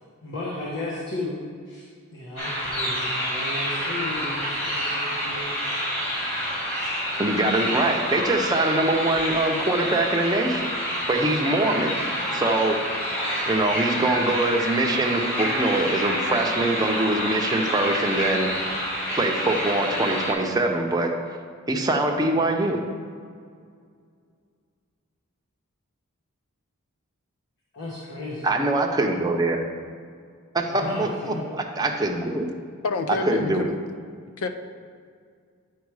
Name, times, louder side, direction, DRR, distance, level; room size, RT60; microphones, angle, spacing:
voice 1, 0.2-1.4 1.7-1.8 2.1-5.6 27.7-28.5 30.7-31.4, left 2 dB, 60° left, -5 dB, 1.3 m, -34 dB
sound 1, 2.4-20.3, equal, 30° left, 2.1 m, -28 dB
voice 2, 7.2-10.7 11.1-12.0 12.3-12.8 13.5-18.5 19.1-21.2 21.7-22.8 28.4-29.6 30.5-31.4 31.8-32.5 33.3-33.7, right 2 dB, 20° right, 1 dB, 0.7 m, -23 dB
voice 3, 32.8-33.8 34.4-34.5, left 3 dB, 75° left, 7 dB, 0.5 m, -27 dB
9.4 x 4.6 x 4.8 m, 2.1 s
head